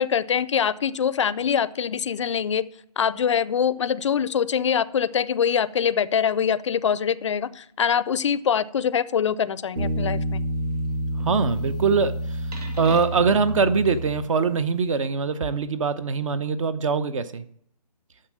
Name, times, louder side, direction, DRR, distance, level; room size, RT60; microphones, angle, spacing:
voice 1, 0.0-2.6 3.0-10.4, left 7 dB, 50° left, 18 dB, 0.5 m, -24 dB
sound 1, 9.8-14.7, right 1 dB, 80° right, 2.3 m, -29 dB
voice 2, 11.2-12.4 12.8-17.4, right 5 dB, 55° right, 14 dB, 0.8 m, -23 dB
9.8 x 6.6 x 7.4 m, 0.70 s
hypercardioid pair, 155°, 20 cm